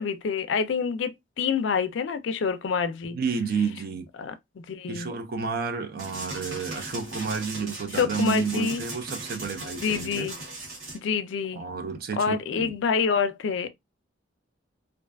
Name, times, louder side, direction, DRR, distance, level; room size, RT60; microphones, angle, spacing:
voice 1, 0.0-3.2 4.2-4.3 4.7-5.1 7.9-8.8 9.8-10.3 10.9-11.6 12.2-13.7, left 6 dB, 65° left, 0.4 m, -27 dB
voice 2, 3.1-4.1 4.9-10.3 11.6-12.7, right 5 dB, 50° right, 0.4 m, -31 dB
sound 1, 6.0-11.0, right 2 dB, 85° right, 1.2 m, -38 dB
2.5 x 2.3 x 2.2 m
head